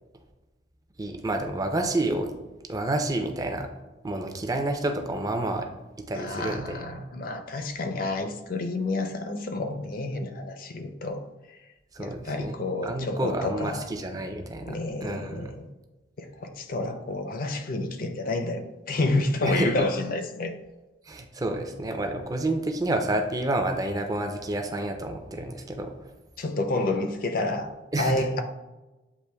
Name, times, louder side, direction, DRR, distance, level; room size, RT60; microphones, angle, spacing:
voice 1, 1.0-2.3 2.7-3.7 4.0-5.7 6.0-6.8 11.9-14.8 15.0-15.5 19.4-19.9 21.1-25.9 27.9-28.3, right 1 dB, 20° right, 5 dB, 0.4 m, -29 dB
voice 2, 6.1-11.6 12.0-13.9 14.6-15.7 16.2-20.5 26.4-28.4, left 2 dB, 50° left, 6 dB, 0.4 m, -29 dB
8.2 x 2.9 x 2.2 m, 1.1 s
head